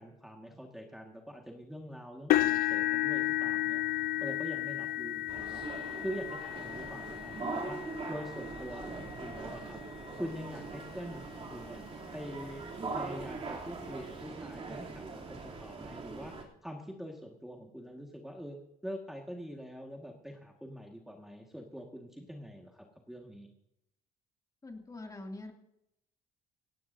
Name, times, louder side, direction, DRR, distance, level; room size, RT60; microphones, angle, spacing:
voice 1, 0.0-9.8 10.1-12.6 12.9-18.6 18.8-23.5, equal, ahead, 0 dB, 1.8 m, -44 dB
sound 1, 2.3-10.3 11.0-11.2 11.6-11.7 13.1-13.2, left 14 dB, 60° left, 0.4 m, -33 dB
sound 2, 5.3-16.4, right 3 dB, 35° right, 3.1 m, -42 dB
voice 2, 24.6-25.5, left 2 dB, 20° left, 2 dB, 2.6 m, -44 dB
17.0 x 17.0 x 2.7 m, 0.82 s
cardioid pair, 110°, 17 cm